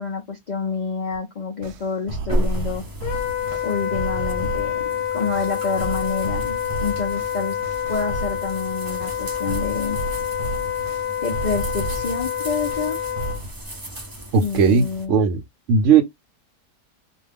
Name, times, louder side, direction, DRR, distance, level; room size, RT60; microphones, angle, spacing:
voice 1, 0.0-2.8 3.6-4.8 5.1-7.6 7.9-10.0 11.2-13.0 14.4-15.1, left 5 dB, 60° left, 0.4 m, -28 dB
sound 1, 1.1-1.2 1.6-4.9 5.3-8.6 9.0-12.2 12.7-13.6, right 2 dB, 80° right, 1.2 m, -33 dB
sound 2, 2.3-15.1, right 1 dB, 30° right, 0.4 m, -34 dB
Wind instrument woodwind instrument, 3.0-13.4, left 10 dB, 80° left, 1.1 m, -27 dB
voice 2, 14.3-15.4 15.7-16.0, right 6 dB, 60° right, 0.8 m, -17 dB
2.6 x 2.2 x 3.4 m
omnidirectional pair, 1.6 m